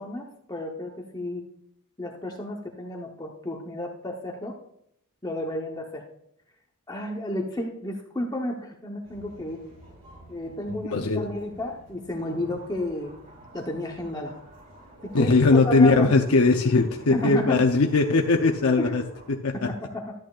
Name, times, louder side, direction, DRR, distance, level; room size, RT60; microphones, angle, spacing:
voice 1, 0.0-1.4 2.0-4.6 5.2-6.0 6.9-9.6 10.3-13.1 13.5-14.3 15.0-15.3 15.6-16.1 17.1-17.6 18.8-18.9 19.5-20.1, left 1 dB, 15° left, 0 dB, 0.9 m, -32 dB
sound 1, 9.0-19.3, right 1 dB, 40° right, 4.4 m, -50 dB
voice 2, 10.9-11.3 15.1-19.0 19.3-19.7, left 3 dB, 70° left, 3 dB, 0.7 m, -20 dB
13.0 x 9.0 x 2.4 m, 0.74 s
head